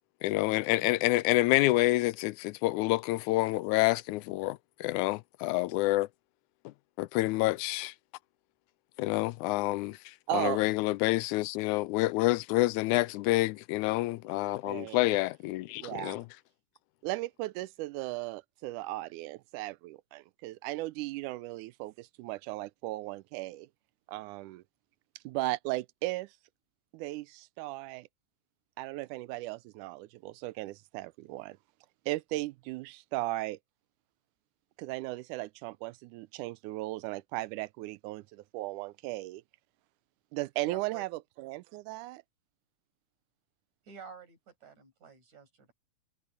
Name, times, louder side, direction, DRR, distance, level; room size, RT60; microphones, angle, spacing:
voice 1, 0.2-6.1 7.0-7.9 9.0-16.2, left 18 dB, 80° left, 2.0 m, -28 dB
voice 2, 10.3-10.6 14.6-15.2 15.8-16.2 17.0-23.7 24.1-24.6 25.2-26.4 26.9-28.1 28.8-31.6 32.1-33.6 34.8-39.4 40.3-42.2, right 19 dB, 90° right, 2.1 m, -36 dB
voice 3, 40.6-41.0 43.9-45.7, right 6 dB, 65° right, 8.7 m, -50 dB
omnidirectional pair, 3.5 m